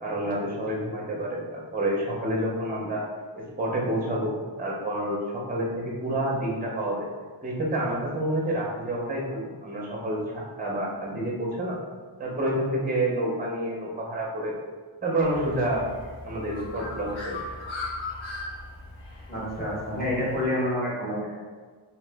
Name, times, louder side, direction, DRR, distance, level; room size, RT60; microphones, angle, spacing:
voice 1, 0.0-3.0 3.4-7.1 7.4-11.8 12.2-14.5 15.0-15.9 16.2-17.4, right 1 dB, 20° right, -3 dB, 0.6 m, -28 dB
Bird, 15.2-20.4, left 2 dB, 75° left, 0.8 m, -38 dB
voice 2, 19.3-21.3, left 1 dB, 20° left, -9 dB, 1.3 m, -28 dB
2.9 x 2.8 x 3.3 m, 1.5 s
wide cardioid pair, 160°, 49 cm